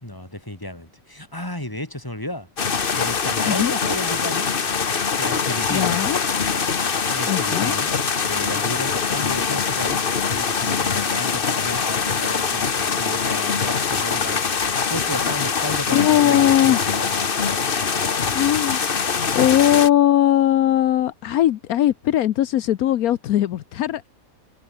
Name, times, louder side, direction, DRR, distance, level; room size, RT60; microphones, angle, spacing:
voice 1, 0.0-2.5 2.9-4.5 5.2-6.0 7.1-7.9 8.2-14.5 14.9-17.1, left 1 dB, 15° left, 4.2 m, -33 dB
sound 1, 2.6-19.9, left 5 dB, 40° left, 1.3 m, -23 dB
voice 2, 5.7-6.2 7.3-7.7 15.9-16.8 18.3-18.9 19.3-24.1, left 12 dB, 80° left, 1.2 m, -19 dB
omnidirectional pair, 1.5 m